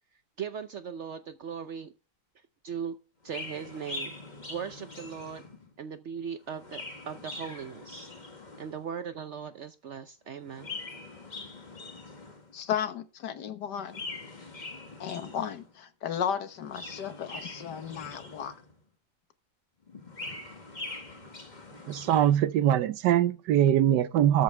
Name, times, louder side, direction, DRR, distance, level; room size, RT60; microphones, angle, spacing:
voice 1, 0.4-1.9 2.6-3.0 3.2-4.1 4.5-5.4 5.8-8.1 8.6-10.7, right 7 dB, 65° right, 0.7 m, -38 dB
Chirp tweet, 3.2-5.7 6.4-8.8 10.4-12.6 13.8-15.7 16.5-18.8 19.9-22.4, left 2 dB, 25° left, 1.8 m, -43 dB
voice 2, 12.5-14.0 15.0-18.6, left 8 dB, 80° left, 1.7 m, -34 dB
voice 3, 21.8-24.4, right 11 dB, 85° right, 1.4 m, -23 dB
13.0 x 8.4 x 3.3 m
omnidirectional pair, 1.8 m